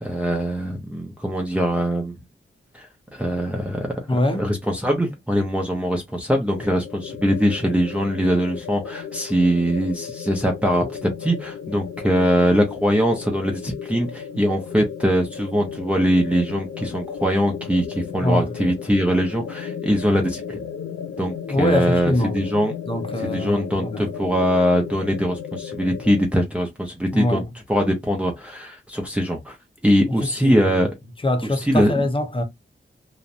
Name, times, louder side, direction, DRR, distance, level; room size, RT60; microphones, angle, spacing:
voice 1, 0.0-2.1 2.7-20.6 21.2-22.7 23.2-27.4 27.7-29.6 29.8-30.9 31.6-31.9, equal, 5° right, 0.6 m, -22 dB
voice 2, 4.1-4.4 18.2-18.5 21.5-22.3 22.9-24.0 27.1-27.4 30.4-30.9 31.2-32.4, left 1 dB, 25° left, 0.9 m, -23 dB
sound 1, 6.5-26.2, left 7 dB, 80° left, 0.5 m, -35 dB
2.9 x 2.1 x 2.5 m
cardioid pair, 65°, 21 cm